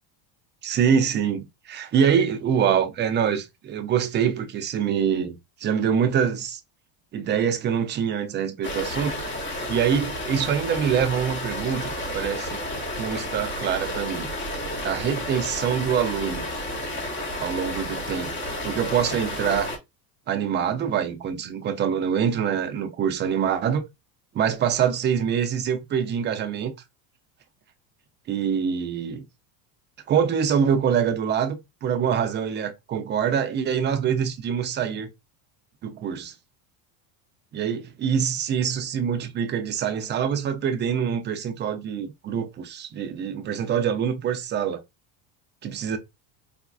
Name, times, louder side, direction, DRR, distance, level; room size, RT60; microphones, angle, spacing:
voice 1, 0.6-5.4 5.6-6.6 7.1-9.1 9.5-12.6 13.0-14.3 14.8-16.5 17.4-18.3 18.6-19.7 20.3-23.8 24.3-26.7 28.3-29.2 30.1-35.1 35.8-36.3 37.5-44.8 45.6-46.0, right 8 dB, 25° right, 0.3 m, -25 dB
sound 1, 8.6-19.8, left 1 dB, 25° left, 0.9 m, -31 dB
4.1 x 2.3 x 2.2 m
supercardioid pair, 120°, 49 cm